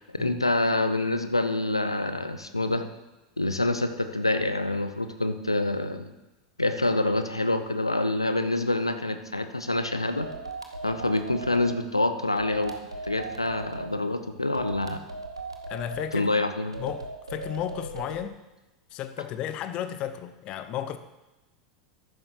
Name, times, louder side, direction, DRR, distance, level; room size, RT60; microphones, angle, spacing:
voice 1, 0.0-2.9 3.4-6.1 6.6-10.3 10.8-12.7 13.0-15.0 16.1-16.8, left 2 dB, 85° left, 8 dB, 0.7 m, -26 dB
sound 1, 10.2-11.7 12.4-13.9 14.5-16.1 16.7-18.2, right 3 dB, 85° right, 1.0 m, -38 dB
voice 2, 15.7-16.3 16.8-18.4 18.9-21.0, left 10 dB, 40° left, 10 dB, 0.8 m, -34 dB
14.0 x 11.5 x 2.9 m, 1.1 s
figure-of-eight pair, 85°, 3 cm